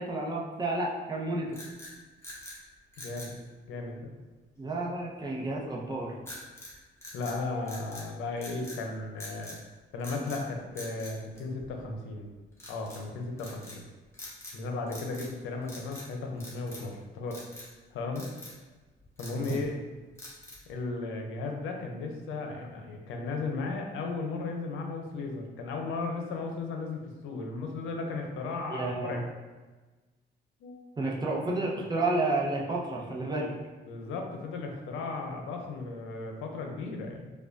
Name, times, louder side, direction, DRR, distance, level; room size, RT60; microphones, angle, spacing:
voice 1, 0.0-1.5 4.6-6.1 19.3-19.6 28.7-29.3 31.0-33.5, right 2 dB, 20° right, -3 dB, 0.8 m, -31 dB
sound 1, 1.5-2.6 2.9-3.4 6.2-6.7 7.0-8.1 8.4-8.8 9.2-9.6 10.0-10.4 10.7-11.9 12.6-13.0 13.4-13.8 14.1-14.6 14.9-15.4 15.6-16.1 16.4-16.9 17.3-17.7 18.1-18.6 19.0-19.7 20.2-20.7, left 1 dB, 15° left, 1.1 m, -45 dB
voice 2, 3.0-3.4 3.6-4.1 7.1-9.6 9.9-12.3 12.7-13.8 14.5-17.4 17.9-18.3 19.2-19.8 20.7-29.2 30.6-30.9 33.9-37.3, left 3 dB, 85° left, 2 dB, 0.6 m, -35 dB
4.8 x 2.3 x 2.5 m, 1.3 s
cardioid pair, 90°, 20 cm